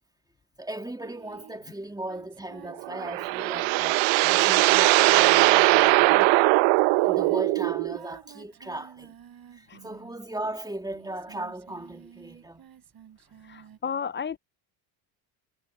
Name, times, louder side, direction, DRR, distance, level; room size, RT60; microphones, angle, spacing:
voice 1, 0.6-6.4 7.0-9.1 9.5-12.6, right 1 dB, 10° right, 2.3 m, -37 dB
Singing, 1.0-10.4 10.8-13.8, right 9 dB, 50° right, 4.8 m, -51 dB
sound 1, 2.8-8.0, right 21 dB, 75° right, 0.9 m, -20 dB
voice 2, 13.5-14.4, left 7 dB, 25° left, 0.7 m, -32 dB
supercardioid pair, 80°, 46 cm